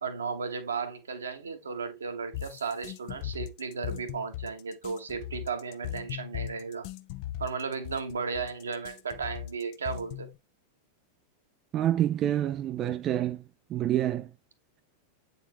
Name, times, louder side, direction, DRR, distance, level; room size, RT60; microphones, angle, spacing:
voice 1, 0.0-6.9 7.4-10.3, right 5 dB, 70° right, 1.2 m, -35 dB
sound 1, 2.3-10.4, left 12 dB, 45° left, 0.6 m, -38 dB
voice 2, 11.7-13.4 13.7-14.3, right 11 dB, 30° right, 0.3 m, -27 dB
8.3 x 4.2 x 3.0 m
figure-of-eight pair, 90°, 0 cm